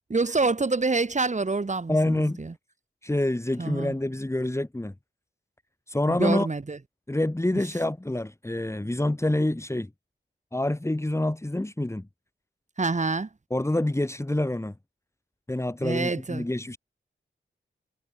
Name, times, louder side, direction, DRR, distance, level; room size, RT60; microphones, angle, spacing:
voice 1, 0.1-2.5 3.6-3.9 6.1-6.8 12.8-13.3 15.8-16.5, right 3 dB, 35° right, 2.7 m, -26 dB
voice 2, 1.9-2.4 3.0-4.9 5.9-6.5 7.1-9.9 10.5-12.1 13.5-14.8 15.5-16.8, left 1 dB, 15° left, 3.5 m, -27 dB
wide cardioid pair, 125°, 20 cm